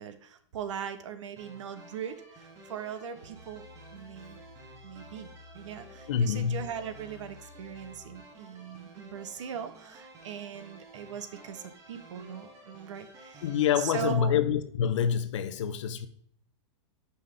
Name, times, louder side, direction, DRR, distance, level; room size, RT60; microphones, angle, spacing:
voice 1, 0.0-3.6 3.9-4.4 4.8-5.3 5.5-13.4 13.8-14.3, right 7 dB, 80° right, 0.8 m, -39 dB
sound 1, 1.4-14.1, right 2 dB, 20° right, 0.9 m, -52 dB
sound 2, 3.3-8.4 9.0-9.1, left 4 dB, 40° right, 2.5 m, -54 dB
voice 2, 6.1-6.6 13.4-16.1, left 8 dB, 80° left, 0.6 m, -27 dB
5.6 x 5.4 x 3.4 m
supercardioid pair, 165°, 16 cm